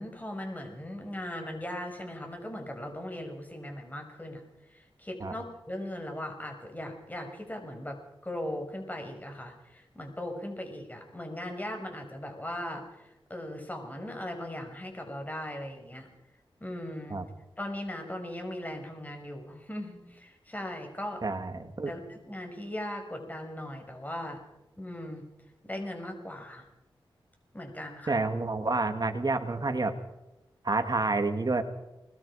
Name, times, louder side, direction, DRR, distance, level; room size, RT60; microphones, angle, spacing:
voice 1, 0.0-4.4 4.7-16.1 16.6-17.2 17.6-21.2 21.9-24.4 24.8-25.2 25.6-26.7 27.5-28.2, left 1 dB, 20° left, 3 dB, 6.1 m, -38 dB
voice 2, 21.2-21.9 28.1-29.9 30.6-31.6, right 3 dB, 45° right, 7 dB, 2.5 m, -29 dB
25.5 x 20.5 x 5.1 m, 0.94 s
cardioid pair, 50°, 9 cm